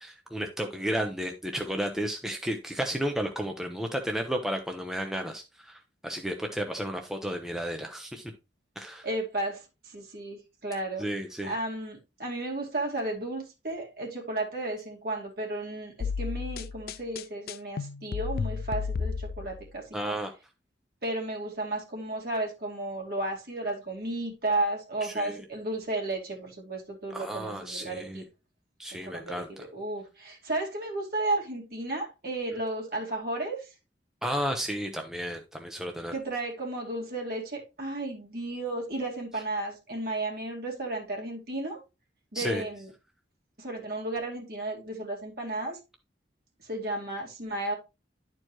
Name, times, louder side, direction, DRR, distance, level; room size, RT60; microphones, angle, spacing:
voice 1, 0.0-8.3 8.8-9.1 11.0-11.5 19.9-20.3 25.0-25.4 27.1-28.2 28.8-29.7 34.2-36.1 42.3-42.6, equal, 5° right, 0.7 m, -33 dB
voice 2, 9.0-11.0 11.5-20.2 21.0-28.2 28.9-33.7 36.1-41.8 42.3-42.9 43.6-45.8 46.6-47.7, right 2 dB, 55° right, 2.6 m, -33 dB
sound 1, 16.0-19.7, left 5 dB, 55° left, 0.3 m, -33 dB
11.5 x 4.6 x 3.0 m
head